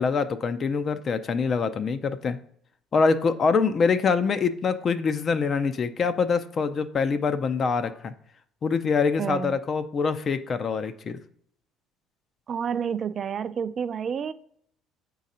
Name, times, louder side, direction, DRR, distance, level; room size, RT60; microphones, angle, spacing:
voice 1, 0.0-2.4 2.9-8.1 8.6-11.2, left 5 dB, 35° left, 11 dB, 0.5 m, -24 dB
voice 2, 9.2-9.6 12.5-14.3, right 7 dB, 40° right, 14 dB, 0.3 m, -29 dB
8.2 x 3.9 x 4.2 m, 0.64 s
cardioid pair, 130°, 0 cm